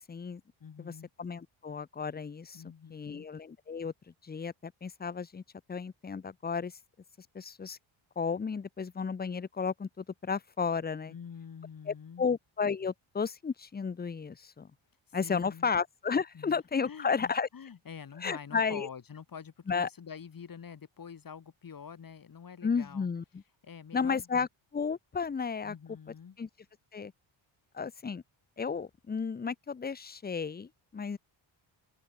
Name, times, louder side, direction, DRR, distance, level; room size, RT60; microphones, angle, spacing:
voice 1, 0.0-0.4 0.8-0.9 1.2-2.6 2.9-3.9 4.2-5.4 5.7-6.7 7.3-7.8 8.2-11.1 11.9-14.7 15.1-17.5 18.2-18.9 19.7-19.9 22.6-23.4 23.9-24.5 24.7-25.7 26.4-26.5 26.9-27.1 27.7-28.2 28.6-31.2, left 5 dB, 20° left, 0.7 m, -33 dB
voice 2, 0.6-1.1 2.5-3.3 11.1-12.3 15.2-15.7 16.3-16.6 16.8-23.1 23.6-24.3 25.6-26.4, left 7 dB, 40° left, 6.7 m, -46 dB
open air
wide cardioid pair, 170°, 50 cm